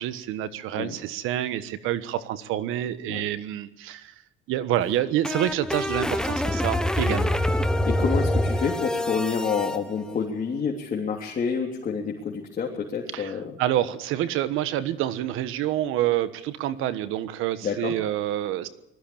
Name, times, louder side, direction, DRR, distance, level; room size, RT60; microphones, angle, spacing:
voice 1, 0.0-4.2 4.5-7.4 13.1-18.7, right 12 dB, 85° right, 14 dB, 1.4 m, -27 dB
sound 1, 4.8-9.8, left 1 dB, 5° left, 1.3 m, -25 dB
voice 2, 7.8-13.4 17.6-17.9, left 6 dB, 40° left, -1 dB, 3.4 m, -28 dB
20.5 x 14.5 x 8.8 m, 0.90 s
cardioid pair, 110°, 20 cm